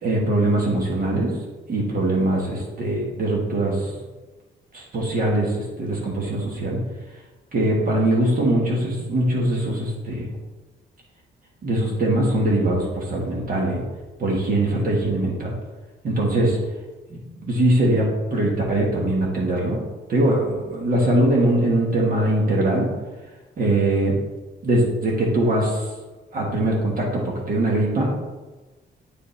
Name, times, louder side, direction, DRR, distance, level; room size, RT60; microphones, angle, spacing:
voice 1, 0.0-1.3 1.7-3.9 4.7-6.8 7.5-10.3 11.6-13.8 14.2-15.5 16.0-16.6 17.1-18.0 18.3-19.8 20.1-22.9 23.6-24.2 24.6-25.9 26.3-28.1, right 1 dB, 45° right, -2 dB, 1.5 m, -22 dB
8.7 x 5.1 x 3.3 m, 1.2 s
cardioid pair, 150°, 20 cm